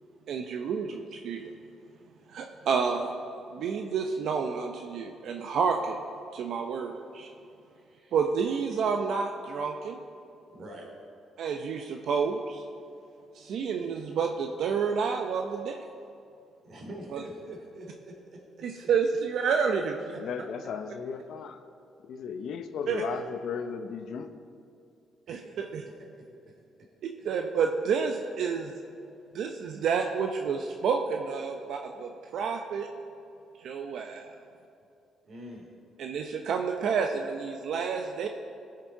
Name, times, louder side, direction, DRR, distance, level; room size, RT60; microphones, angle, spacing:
voice 1, 0.3-1.4 2.3-3.1 3.5-6.0 6.3-7.3 8.1-10.0 11.4-12.6 13.3-15.8 17.1-17.2 18.6-19.9 22.9-23.0 25.3-25.8 27.0-28.7 29.3-32.9 33.6-34.4 36.0-38.3, right 6 dB, 70° right, 3 dB, 0.6 m, -29 dB
voice 2, 7.7-8.2 10.5-10.9 16.6-18.7 20.1-20.2 23.0-23.1 25.3-26.5 27.2-27.3 35.2-35.7, right 1 dB, 55° right, 0 dB, 2.7 m, -46 dB
voice 3, 20.2-21.6 22.0-24.3, left 6 dB, 70° left, 9 dB, 0.7 m, -35 dB
16.0 x 6.6 x 4.6 m, 2.6 s
cardioid pair, 90°, 0 cm